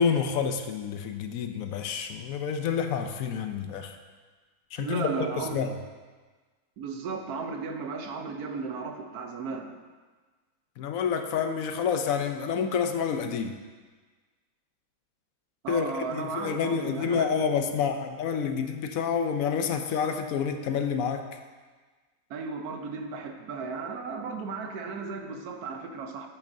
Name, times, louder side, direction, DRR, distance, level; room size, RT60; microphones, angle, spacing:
voice 1, 0.0-4.0 4.7-5.1 5.5-5.8 10.8-13.6 15.7-21.3, left 6 dB, 75° left, 7 dB, 1.0 m, -28 dB
voice 2, 4.8-5.7 6.8-9.7 15.6-17.3 22.3-26.3, right 4 dB, 85° right, 5 dB, 1.3 m, -35 dB
8.8 x 8.3 x 2.6 m, 1.4 s
omnidirectional pair, 1.6 m